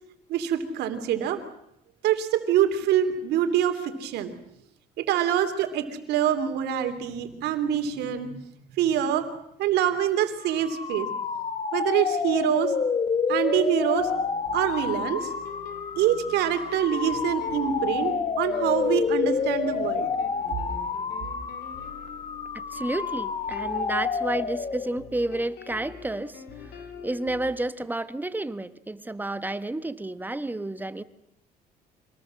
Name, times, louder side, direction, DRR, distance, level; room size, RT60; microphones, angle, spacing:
voice 1, 0.3-1.4 2.0-4.3 5.0-8.4 8.8-9.3 9.6-11.1 11.7-12.7 13.3-14.1 14.5-15.3 16.0-20.1, right 10 dB, 80° right, 7 dB, 3.0 m, -25 dB
sound 1, 10.4-25.1, left 5 dB, 35° left, 1.6 m, -29 dB
sound 2, 14.0-27.5, left 7 dB, 80° left, 3.1 m, -44 dB
voice 2, 22.5-26.4 26.7-31.0, right 2 dB, 10° right, 13 dB, 1.2 m, -31 dB
25.5 x 19.0 x 7.6 m, 0.77 s
cardioid pair, 110°, 17 cm